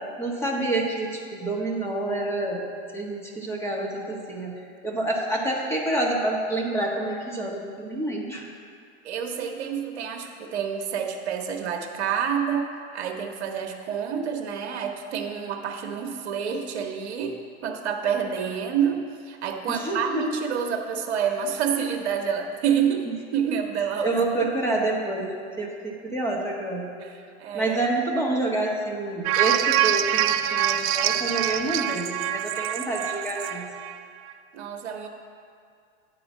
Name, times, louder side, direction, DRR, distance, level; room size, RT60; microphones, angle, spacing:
voice 1, 0.2-2.6 2.9-8.5 19.7-20.2 24.0-26.9 27.5-33.7, right 2 dB, 5° left, -2 dB, 1.4 m, -28 dB
voice 2, 9.0-24.5 27.0-27.8 34.5-35.1, right 7 dB, 75° right, 3 dB, 1.1 m, -28 dB
sound 1, 29.2-34.0 34.3-34.4, right 11 dB, 40° right, 0.5 m, -25 dB
9.1 x 4.2 x 7.3 m, 2.2 s
hypercardioid pair, 115°, 34 cm